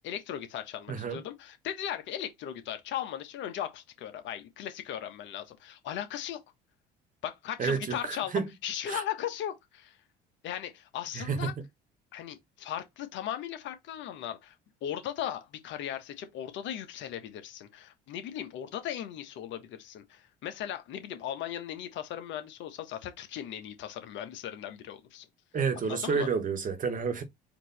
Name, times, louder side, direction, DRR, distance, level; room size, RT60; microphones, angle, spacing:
voice 1, 0.0-6.4 7.2-10.0 10.4-11.5 12.1-14.6 14.8-25.3 25.8-26.3, left 10 dB, 65° left, 1.2 m, -37 dB
voice 2, 0.9-1.2 7.6-8.5 8.9-9.0 11.1-11.5 25.5-27.2, right 5 dB, 40° right, 1.3 m, -30 dB
4.5 x 2.9 x 4.0 m
supercardioid pair, 75°, 21 cm